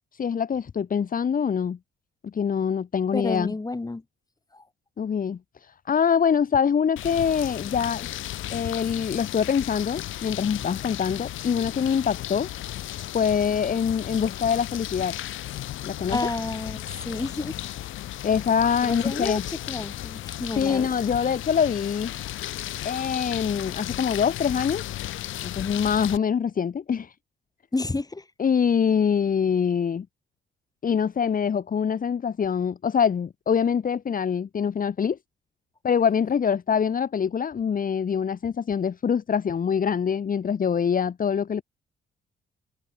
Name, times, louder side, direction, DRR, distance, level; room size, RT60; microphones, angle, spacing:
voice 1, 0.1-1.8 2.2-3.5 5.0-8.1 8.5-12.5 13.1-15.2 15.8-16.2 18.2-19.4 20.6-22.1 22.8-24.8 25.4-27.1 28.4-30.1 30.8-35.2 35.8-41.6, left 7 dB, 45° left, 2.1 m, -24 dB
voice 2, 3.1-4.0 4.5-4.6 16.1-17.6 18.8-19.4 19.7-20.9 27.7-28.2, left 2 dB, 20° left, 6.0 m, -30 dB
sound 1, 7.0-26.2, left 14 dB, 85° left, 6.2 m, -35 dB
cardioid pair, 90°, 20 cm